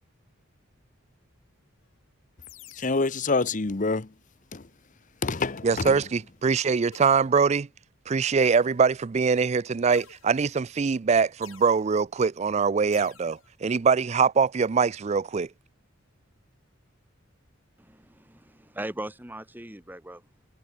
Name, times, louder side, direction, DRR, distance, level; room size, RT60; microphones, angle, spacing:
sound 1, 2.4-3.3 5.4-5.9 6.9-7.5 8.4-9.1 9.9-10.7 11.4-12.0 12.9-13.5, left 8 dB, 80° left, 4.0 m, -52 dB
voice 1, 2.8-4.1 4.5-4.6 5.2-6.0, left 3 dB, 40° left, 0.9 m, -26 dB
voice 2, 5.6-7.7 8.1-15.5, right 5 dB, 35° right, 0.4 m, -23 dB
voice 3, 17.8-20.2, right 1 dB, 10° right, 2.0 m, -39 dB
head